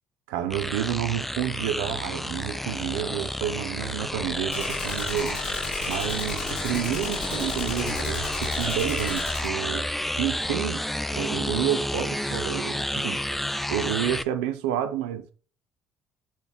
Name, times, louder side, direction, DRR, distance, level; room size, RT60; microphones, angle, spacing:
voice 1, 0.3-5.4 5.8-9.9 10.2-10.9 11.1-13.2 13.7-15.3, right 11 dB, 80° right, 0.5 m, -29 dB
sound 1, 0.5-14.2, left 1 dB, 5° left, 0.3 m, -30 dB
Gunshot gunfire, 4.5-9.5, left 4 dB, 80° left, 0.8 m, -35 dB
6.1 x 2.3 x 3.4 m
hypercardioid pair, 60°, 4 cm